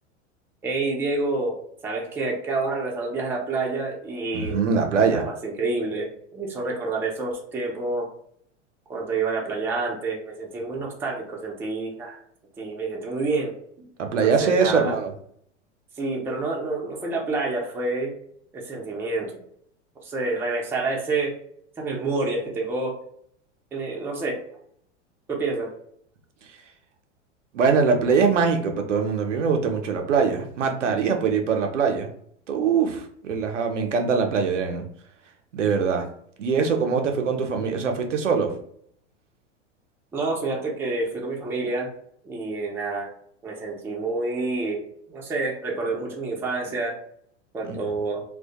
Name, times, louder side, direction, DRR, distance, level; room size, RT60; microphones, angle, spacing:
voice 1, 0.6-1.5 1.8-4.6 5.1-8.1 8.9-12.2 12.6-13.5 13.8-13.9 14.2-15.0 16.0-18.1 18.5-19.3 20.0-21.3 21.8-23.0 23.7-24.4 25.3-25.7 40.1-41.9 42.2-43.1 43.4-44.8 45.1-47.0 47.5-48.2, right 3 dB, 5° right, -2 dB, 0.3 m, -28 dB
voice 2, 4.3-5.2 14.0-15.1 27.5-32.1 32.5-34.8 35.5-36.1 36.4-38.5 47.6-47.8, right 5 dB, 85° right, 4 dB, 0.5 m, -22 dB
2.1 x 2.1 x 2.7 m, 0.65 s
hypercardioid pair, 95°, 36 cm